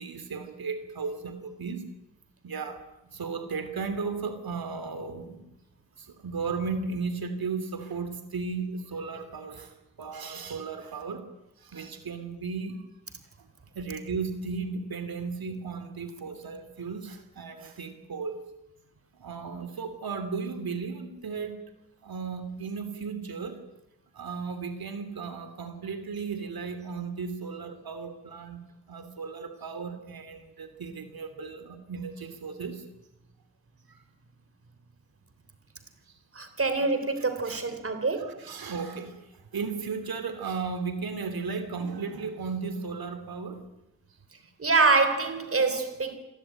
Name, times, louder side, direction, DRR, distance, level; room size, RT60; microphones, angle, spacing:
voice 1, 0.0-1.9 2.4-2.8 3.1-5.5 6.0-11.3 11.6-12.9 13.4-13.5 13.7-18.5 19.1-21.6 22.0-23.6 24.1-28.6 28.9-32.9 33.9-34.0 36.1-36.2 37.2-37.6 38.2-43.7, right 5 dB, 80° right, 9 dB, 3.0 m, -35 dB
voice 2, 36.4-38.3 44.6-46.2, right 3 dB, 40° right, 9 dB, 3.6 m, -25 dB
27.5 x 21.5 x 9.2 m, 0.91 s
wide cardioid pair, 150°, 35 cm